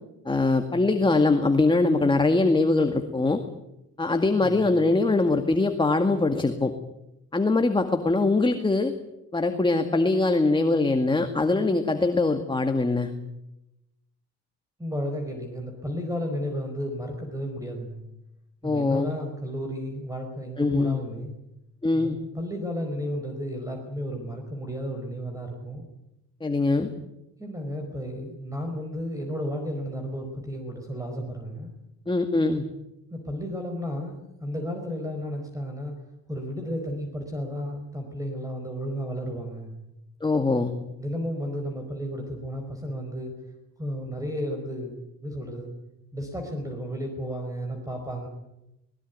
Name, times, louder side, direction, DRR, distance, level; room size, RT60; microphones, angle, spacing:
voice 1, 0.3-3.4 4.0-6.7 7.3-8.9 9.3-13.1 18.6-19.1 20.6-21.0 21.8-22.2 26.4-26.9 32.1-32.6 40.2-40.7, left 3 dB, 15° left, 6 dB, 2.0 m, -22 dB
voice 2, 14.8-18.0 18.6-21.3 21.9-22.1 22.3-25.8 27.4-31.7 33.1-35.9 36.3-39.7 41.0-43.3 43.8-45.7 46.1-48.3, equal, 10° right, 4 dB, 4.8 m, -33 dB
20.5 x 19.5 x 9.5 m, 0.89 s
cardioid pair, 90°, 30 cm